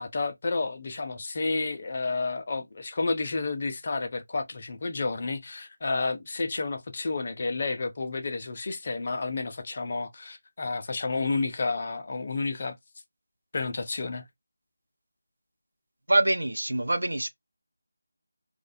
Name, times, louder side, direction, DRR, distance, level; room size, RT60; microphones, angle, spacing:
voice 1, 0.0-12.8 13.5-14.2, left 3 dB, 30° left, 0.4 m, -30 dB
voice 2, 16.1-17.3, right 1 dB, 90° right, 0.5 m, -24 dB
2.6 x 2.1 x 2.5 m
figure-of-eight pair, 175°, 0 cm